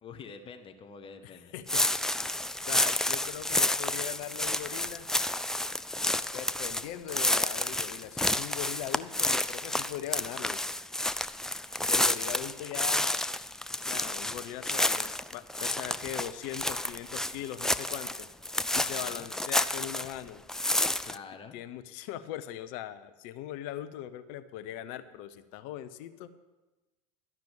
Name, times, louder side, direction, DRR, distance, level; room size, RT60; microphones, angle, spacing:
voice 1, 0.0-1.5 11.7-12.2 18.9-19.3 21.0-21.6, left 5 dB, 30° left, 7 dB, 1.1 m, -47 dB
voice 2, 1.5-2.0 2.5-5.1 6.3-10.6 11.9-13.3 13.8-18.3 18.7-20.4 21.5-26.3, left 12 dB, 50° left, 11 dB, 0.8 m, -40 dB
sound 1, 1.7-20.2 20.5-21.2, left 1 dB, 5° left, 0.3 m, -30 dB
12.5 x 6.0 x 8.7 m, 1.1 s
figure-of-eight pair, 80°, 18 cm